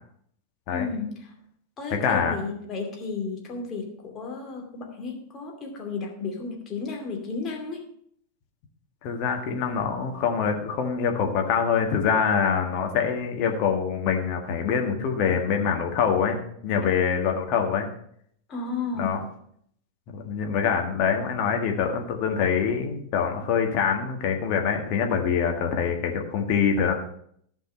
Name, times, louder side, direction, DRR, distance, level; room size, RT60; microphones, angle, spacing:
voice 1, 0.7-1.3 1.8-7.8 18.5-19.2, left 4 dB, 30° left, 1 dB, 2.6 m, -33 dB
voice 2, 1.9-2.4 9.0-17.9 19.0-19.2 20.1-26.9, left 6 dB, 45° left, 3 dB, 1.8 m, -25 dB
14.0 x 5.4 x 5.6 m, 0.66 s
figure-of-eight pair, 90°, 0 cm